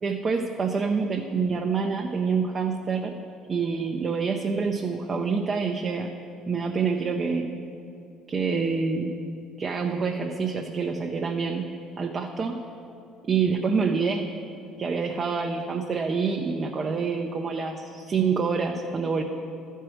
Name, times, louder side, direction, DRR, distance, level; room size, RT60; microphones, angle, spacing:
voice 1, 0.0-3.1 3.5-6.1 6.5-7.5 8.3-9.1 9.6-11.7 12.0-12.6 13.3-14.3 14.8-19.2, right 5 dB, 35° right, 2 dB, 0.6 m, -26 dB
12.0 x 4.5 x 6.2 m, 2.6 s
supercardioid pair, 95°, 0 cm